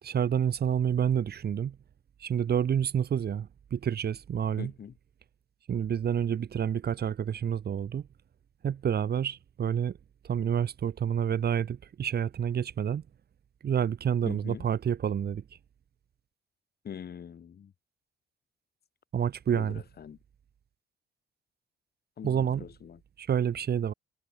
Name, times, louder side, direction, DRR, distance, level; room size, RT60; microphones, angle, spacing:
voice 1, 0.0-1.8 2.2-4.7 5.7-8.1 8.6-10.0 10.2-13.0 13.6-15.4 19.1-19.8 22.2-22.7 23.2-23.9, right 8 dB, 55° right, 2.1 m, -28 dB
voice 2, 4.6-4.9 14.2-14.7 16.8-17.7 19.5-20.2 22.2-23.0, left 8 dB, 55° left, 3.1 m, -43 dB
cardioid pair, 90°, 19 cm